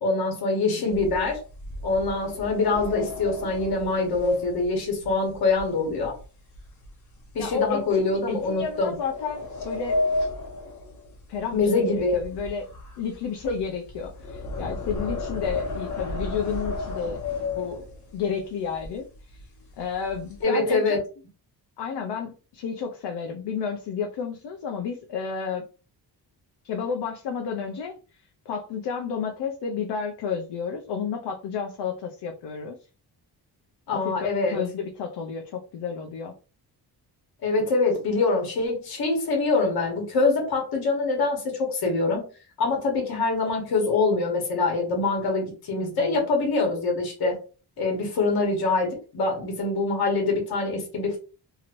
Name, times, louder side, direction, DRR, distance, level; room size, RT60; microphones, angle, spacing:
voice 1, 0.0-1.4 1.8-6.1 7.3-9.0 11.5-12.2 20.4-21.0 33.9-34.6 37.4-42.2 42.6-47.4 47.8-51.2, left 3 dB, 60° left, 0 dB, 1.2 m, -24 dB
voice 2, 0.7-1.0 7.4-10.0 11.3-12.7 13.0-17.2 17.5-17.8 18.1-19.4 19.8-21.0 21.8-25.6 26.6-32.8 33.9-34.1 34.5-36.3 45.8-46.2, left 6 dB, 80° left, 2 dB, 0.6 m, -31 dB
sound 1, 0.9-6.2 6.5-6.9 7.4-7.5 8.3-11.7 11.9-18.2 18.8-18.9 19.2-19.4 19.8-20.4, left 2 dB, 45° left, 1.0 m, -32 dB
3.0 x 2.8 x 2.5 m, 0.35 s
wide cardioid pair, 170°, 40 cm